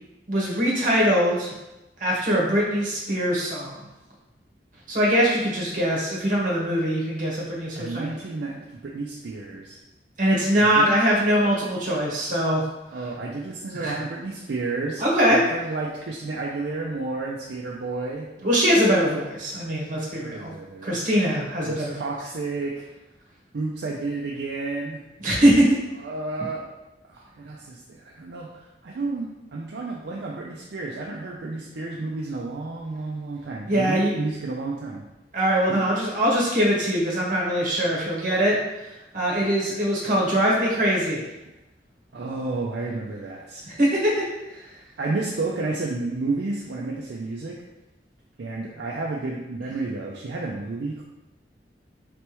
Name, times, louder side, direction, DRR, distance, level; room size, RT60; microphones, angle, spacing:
voice 1, 0.3-1.5 2.0-3.8 4.9-8.1 10.2-12.7 13.7-14.0 15.0-15.4 18.4-20.5 20.8-22.1 25.2-25.7 33.7-34.1 35.3-38.9 39.1-41.3 43.8-44.3 44.5-44.6, equal, 50° right, -4 dB, 1.3 m, -22 dB
voice 2, 7.7-9.8 10.6-10.9 12.9-18.3 20.2-21.0 21.6-22.9 23.5-25.0 26.0-26.7 27.0-35.1 35.7-35.9 42.1-43.8 45.0-47.6 48.4-51.0, right 3 dB, 70° right, -2 dB, 0.5 m, -31 dB
4.1 x 3.4 x 3.0 m, 0.98 s
head